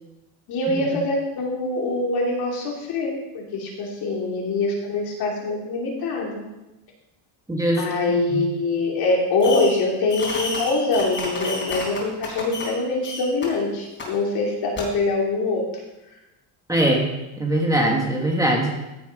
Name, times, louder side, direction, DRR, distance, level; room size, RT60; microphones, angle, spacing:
voice 1, 0.5-6.4 7.8-15.6, left 2 dB, 55° left, -1 dB, 3.1 m, -24 dB
voice 2, 7.5-7.8 8.3-8.4 16.7-17.0 17.4-18.7, right 1 dB, 10° right, -1 dB, 1.3 m, -21 dB
Fireworks, 9.4-9.8 10.1-12.8 13.0-13.5 14.0-14.1 14.8-14.9, left 3 dB, 25° left, 3.4 m, -31 dB
15.0 x 7.2 x 5.1 m, 0.97 s
cardioid pair, 180°, 44 cm